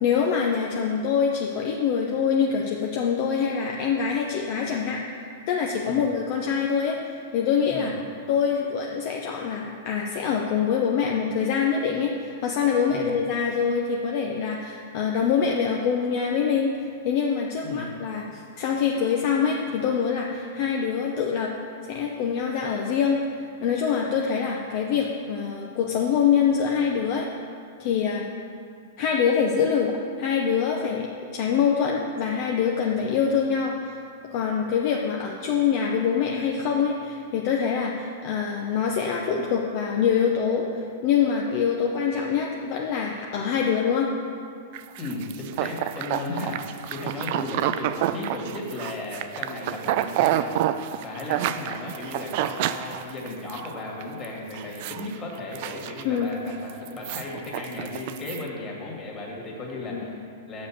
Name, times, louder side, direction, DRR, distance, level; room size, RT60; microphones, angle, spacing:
voice 1, 0.0-5.0 5.5-7.9 8.3-16.7 17.0-21.5 21.9-23.2 23.6-27.3 27.8-28.2 29.0-34.0 34.3-44.1 56.0-56.4 59.9-60.0, left 7 dB, 55° left, -1 dB, 0.7 m, -25 dB
sound 1, 44.7-53.7 54.0-54.2 54.5-55.1 55.4-56.3 56.7-58.4, right 12 dB, 55° right, 0.3 m, -28 dB
voice 2, 45.0-50.6 51.0-60.7, left 2 dB, 25° left, -3 dB, 2.2 m, -35 dB
6.8 x 5.4 x 7.3 m, 2.3 s
hypercardioid pair, 120°, 0 cm